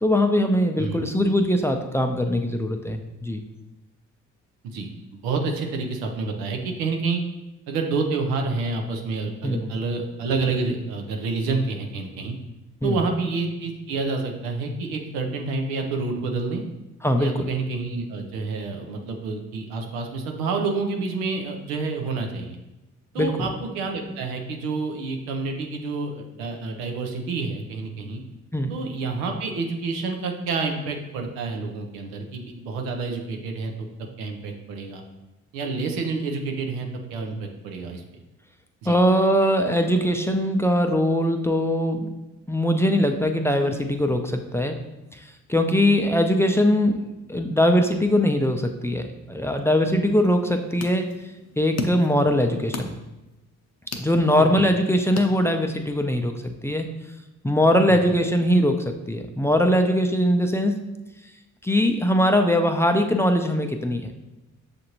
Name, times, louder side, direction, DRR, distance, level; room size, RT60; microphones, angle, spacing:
voice 1, 0.0-3.4 9.4-9.7 12.8-13.0 17.0-17.5 23.2-23.3 28.5-28.7 38.9-42.1 42.5-44.8 45.1-45.2 45.5-51.1 51.6-53.0 53.9-56.9 57.4-60.9 61.6-64.1, equal, 10° left, 4 dB, 0.4 m, -21 dB
voice 2, 4.7-7.2 7.7-12.3 12.8-16.6 17.2-22.6 23.1-28.2 28.7-33.9 34.2-35.0 35.5-38.0 38.8-39.0 54.4-54.7 57.9-58.0, right 4 dB, 85° right, 3 dB, 0.6 m, -28 dB
sound 1, 50.3-55.9, left 4 dB, 45° left, 0.7 m, -37 dB
6.5 x 2.6 x 2.9 m, 1.0 s
hypercardioid pair, 50°, 35 cm